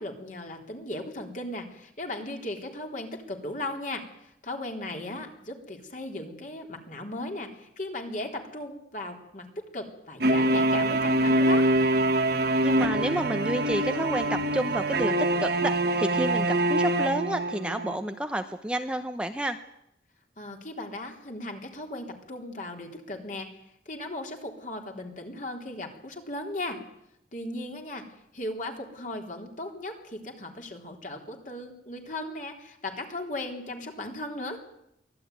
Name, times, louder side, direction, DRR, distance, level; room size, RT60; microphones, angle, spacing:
voice 1, 0.0-11.7 20.4-23.5 23.9-26.8 27.3-28.0 28.3-34.6, left 1 dB, 45° left, 2 dB, 3.7 m, -37 dB
sound 1, 10.2-18.0, right 1 dB, 60° right, 1.7 m, -24 dB
voice 2, 12.6-15.1 15.4-15.7 16.0-19.6, right 1 dB, 5° right, 7 dB, 0.8 m, -30 dB
23.5 x 16.5 x 9.5 m, 0.78 s
head